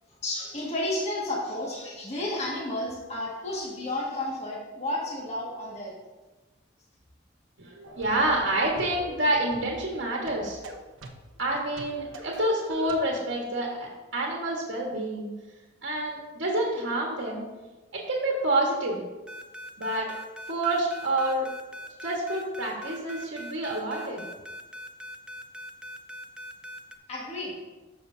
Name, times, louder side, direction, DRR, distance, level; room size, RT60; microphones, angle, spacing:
voice 1, 0.2-5.9 27.1-27.6, left 1 dB, 35° left, -4 dB, 1.8 m, -32 dB
voice 2, 7.6-10.6 11.4-15.3 15.8-17.4 17.9-19.0 19.8-20.1 20.5-21.5 22.0-24.3, right 1 dB, 65° right, -2 dB, 1.5 m, -28 dB
sound 1, 7.8-13.0, right 1 dB, 85° right, 0.9 m, -44 dB
sound 2, 19.3-27.0, equal, 5° right, 0.3 m, -41 dB
14.0 x 6.2 x 2.7 m, 1.2 s
head